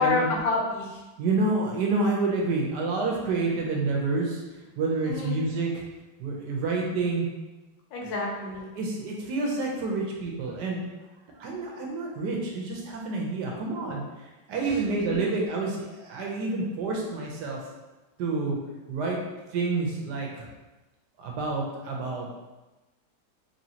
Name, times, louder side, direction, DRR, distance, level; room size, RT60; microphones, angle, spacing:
voice 1, 0.0-1.0 3.5-3.7 5.0-5.4 7.9-8.7 14.9-15.2, left 3 dB, 85° left, -2 dB, 1.5 m, -28 dB
voice 2, 1.2-4.4 4.8-5.8 6.2-7.3 8.0-8.1 8.7-10.9 11.4-14.0 14.5-17.6 18.2-18.6 18.9-19.2 19.5-20.5 21.2-22.3, right 3 dB, 70° right, -1 dB, 1.2 m, -28 dB
4.2 x 3.1 x 2.8 m, 1.1 s
omnidirectional pair, 2.0 m